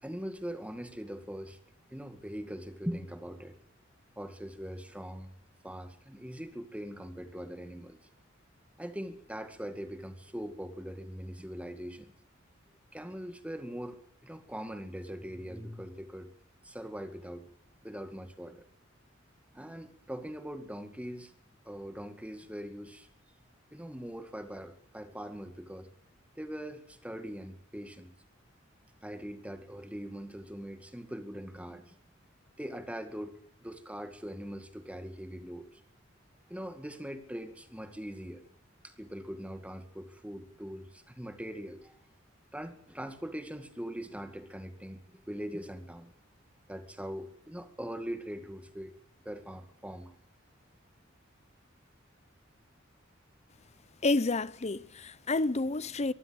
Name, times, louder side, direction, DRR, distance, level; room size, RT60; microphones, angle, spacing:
voice 1, 0.0-1.6 1.9-3.6 4.2-5.3 5.6-8.0 8.8-12.1 12.9-16.3 16.6-17.5 17.8-18.7 19.5-21.3 21.7-23.1 23.7-25.9 26.4-28.1 29.0-32.0 32.6-33.4 33.6-35.8 36.5-38.4 38.8-42.0 42.5-46.1 46.7-48.9 49.3-50.1, equal, 5° right, 2.0 m, -41 dB
voice 2, 54.0-56.1, left 2 dB, 35° left, 0.7 m, -29 dB
24.0 x 15.0 x 8.0 m
head